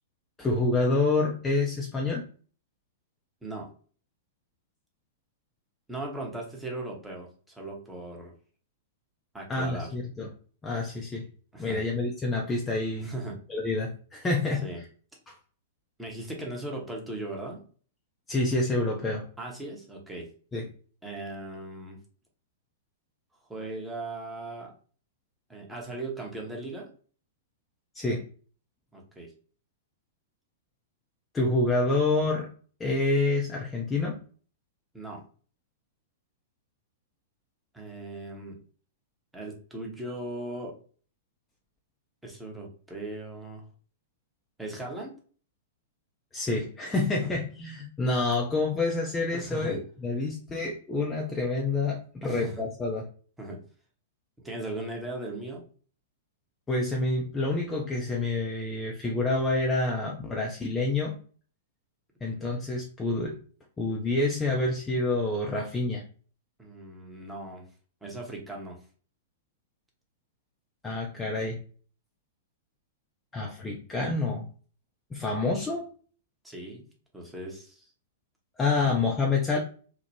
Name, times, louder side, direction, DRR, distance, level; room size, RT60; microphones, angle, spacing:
voice 1, 0.4-2.3 9.5-10.3 10.6-11.3 11.6-13.1 13.5-14.7 15.3-15.4 18.3-19.3 20.5-20.7 27.9-28.2 31.3-32.5 32.8-34.2 46.3-53.1 56.7-61.2 62.2-63.4 63.8-66.0 70.8-71.6 73.3-74.5 75.1-75.9 78.6-79.6, left 2 dB, 15° left, -1 dB, 0.4 m, -28 dB
voice 2, 5.9-8.3 9.3-9.9 11.5-11.8 13.0-13.4 14.6-14.8 16.0-17.6 19.4-20.3 21.0-22.0 23.5-24.7 25.5-26.9 28.9-29.3 34.9-35.2 37.7-38.6 39.3-40.7 42.2-43.6 44.6-45.2 47.2-47.3 49.3-49.8 52.2-52.6 53.4-53.6 54.4-55.6 62.2-62.5 66.6-67.6 68.0-68.8 76.4-76.9 77.1-77.9 78.8-78.9, right 2 dB, 5° right, -1 dB, 0.8 m, -38 dB
2.9 x 2.1 x 2.7 m, 0.42 s
figure-of-eight pair, 100°, 0 cm